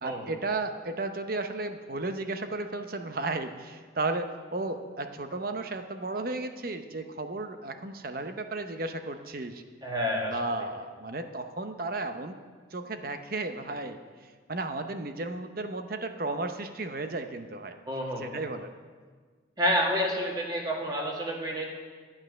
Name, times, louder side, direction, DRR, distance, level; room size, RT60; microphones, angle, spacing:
voice 1, 0.0-9.6 10.3-12.3 12.7-17.8 18.2-18.7, right 2 dB, 50° right, 7 dB, 0.8 m, -34 dB
voice 2, 9.8-10.4 17.9-18.4 19.6-21.7, equal, 20° right, -1 dB, 1.8 m, -29 dB
12.5 x 8.8 x 6.4 m, 1.6 s
head